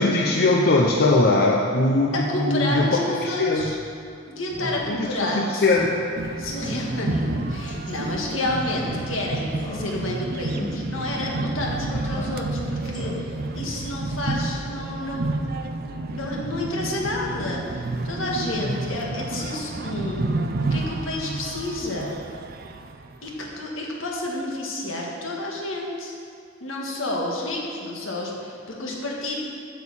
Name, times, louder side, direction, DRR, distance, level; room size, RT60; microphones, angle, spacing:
voice 1, 0.0-2.9 3.2-3.7 4.9-6.0, left 2 dB, 50° left, -1 dB, 0.7 m, -20 dB
voice 2, 2.1-3.8 4.3-5.6 6.4-15.6 16.1-20.3 20.7-22.2 23.2-26.1 26.6-29.4, left 1 dB, 80° left, -1 dB, 1.7 m, -30 dB
Speech synthesizer, 3.5-3.7 4.1-4.2 4.5-4.8 5.2-5.3 5.7-5.9 6.2-6.3 6.6-6.9 7.7-7.9 8.6-9.2 9.6-10.2 10.5-10.7 11.3-11.5 12.1-12.6 12.9-13.5, equal, 20° left, 1.6 m, -36 dB
sound 1, 6.2-23.5, right 2 dB, 50° right, 0.5 m, -30 dB
8.2 x 6.7 x 7.2 m, 2.4 s
head